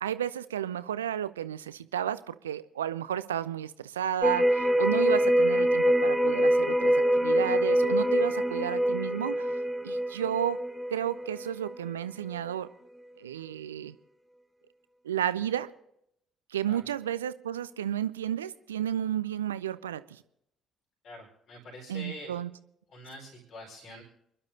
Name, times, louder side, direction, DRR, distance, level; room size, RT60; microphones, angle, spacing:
voice 1, 0.0-9.5 9.8-10.6 10.9-12.7 13.2-13.9 15.0-15.7 16.5-20.2 21.9-22.5, right 10 dB, 80° right, 16 dB, 0.5 m, -32 dB
sound 1, 4.2-11.9 12.3-12.4, equal, 5° right, 0.9 m, -25 dB
voice 2, 21.0-22.4 22.9-24.0, left 1 dB, 55° left, -2 dB, 4.7 m, -45 dB
29.0 x 11.5 x 2.7 m, 0.78 s
figure-of-eight pair, 45°, 0 cm